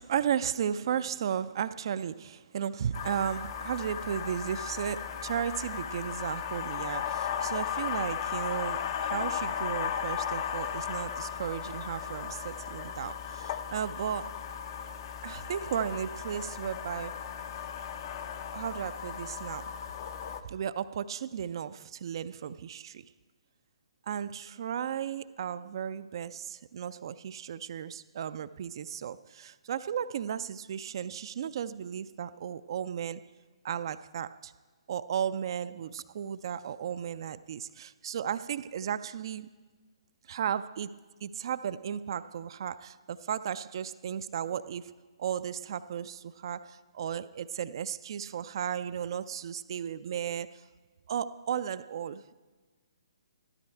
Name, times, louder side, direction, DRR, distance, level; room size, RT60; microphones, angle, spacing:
voice 1, 0.0-14.4 15.2-17.2 18.5-19.7 20.4-23.1 24.0-33.2 33.6-34.5 34.9-39.5 40.3-44.9 45.2-50.6 51.1-52.3, right 8 dB, 50° right, 0.3 m, -35 dB
sound 1, 2.9-20.4, left 8 dB, 45° left, 0.6 m, -36 dB
13.5 x 12.5 x 4.5 m
figure-of-eight pair, 135°, 3 cm